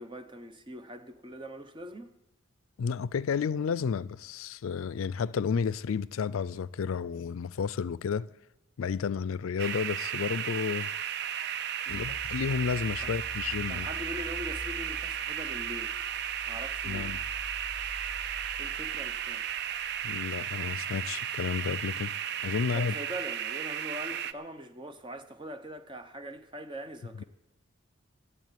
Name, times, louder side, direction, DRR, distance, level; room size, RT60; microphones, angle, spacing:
voice 1, 0.0-2.1 11.9-12.1 13.0-13.1 13.7-15.9 16.5-17.1 18.6-19.4 22.7-27.2, equal, 25° right, 0.8 m, -42 dB
voice 2, 2.8-8.3 8.8-10.9 11.9-13.9 16.9-17.2 20.0-22.1 22.4-23.0, left 6 dB, 80° left, 0.4 m, -31 dB
sound 1, 9.6-24.3, right 9 dB, 50° right, 0.4 m, -34 dB
sound 2, 11.9-21.0, left 1 dB, ahead, 1.2 m, -46 dB
12.5 x 8.3 x 9.1 m
head